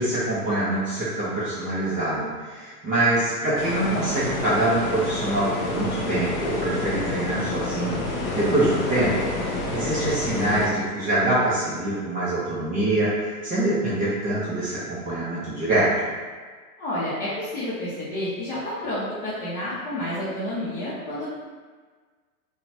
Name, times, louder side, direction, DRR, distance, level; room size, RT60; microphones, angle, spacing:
voice 1, 0.0-8.1 8.3-15.9, right 1 dB, 20° right, -10 dB, 0.6 m, -25 dB
sound 1, 3.6-10.7, left 2 dB, 65° left, 0.8 m, -29 dB
voice 2, 16.8-21.3, left 1 dB, 20° left, -11 dB, 0.7 m, -30 dB
2.8 x 2.2 x 2.7 m, 1.5 s
hypercardioid pair, 115°, 45 cm